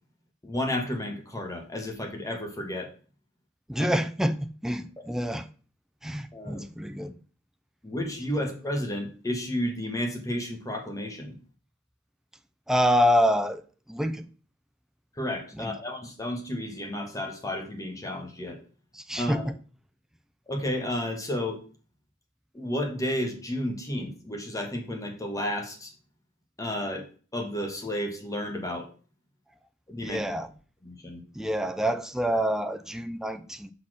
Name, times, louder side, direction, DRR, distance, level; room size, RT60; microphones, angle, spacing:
voice 1, 0.4-2.9 3.8-3.9 5.0-5.1 6.3-6.6 7.8-11.4 15.1-18.6 19.1-19.4 20.5-21.6 22.5-25.9 26.6-28.9 29.9-30.2 30.8-31.2, left 1 dB, 15° left, 1.5 m, -32 dB
voice 2, 3.7-5.5 6.0-7.2 12.7-13.6 13.9-14.3 15.5-15.7 18.9-19.6 30.0-30.5 31.4-33.7, equal, 5° right, 0.5 m, -27 dB
5.6 x 4.3 x 6.2 m
head